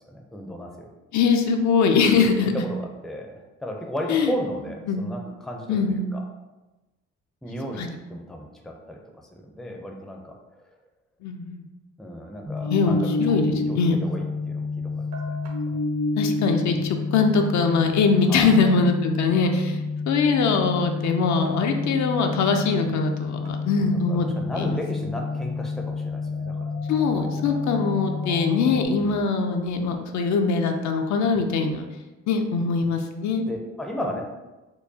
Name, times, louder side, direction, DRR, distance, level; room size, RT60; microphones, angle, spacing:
voice 1, 0.1-0.9 2.2-6.2 7.4-7.8 8.1-9.0 9.3-10.7 12.0-13.1 13.4-15.4 15.7-15.8 18.3-18.6 23.8-26.7 27.1-27.3 29.0-29.2 33.5-34.2, equal, ahead, 1 dB, 0.5 m, -35 dB
voice 2, 1.1-2.5 4.1-4.3 4.9-5.0 5.7-6.1 7.8-7.9 11.2-11.6 12.6-14.0 16.2-24.3 24.6-24.8 26.9-31.9 32.3-33.4, left 4 dB, 70° left, 4 dB, 0.5 m, -22 dB
sound 1, 12.4-28.8, left 4 dB, 60° right, 1.0 m, -29 dB
4.5 x 2.3 x 2.7 m, 1.1 s
cardioid pair, 90°, 30 cm